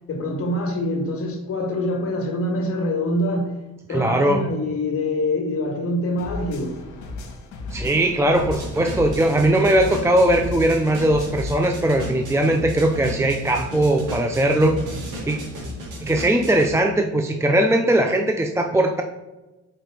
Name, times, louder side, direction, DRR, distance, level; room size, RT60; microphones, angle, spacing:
voice 1, 0.1-3.5 3.9-6.7, left 1 dB, 50° left, 1 dB, 1.6 m, -25 dB
voice 2, 3.9-4.5 7.7-14.8 15.3-15.4 16.0-19.0, right 1 dB, 10° right, 3 dB, 0.5 m, -19 dB
sound 1, 6.2-11.5, left 3 dB, 70° left, 1.2 m, -35 dB
sound 2, 8.3-16.7, equal, 90° right, 2.0 m, -34 dB
5.0 x 4.4 x 4.7 m, 1.1 s
cardioid pair, 90°, 30 cm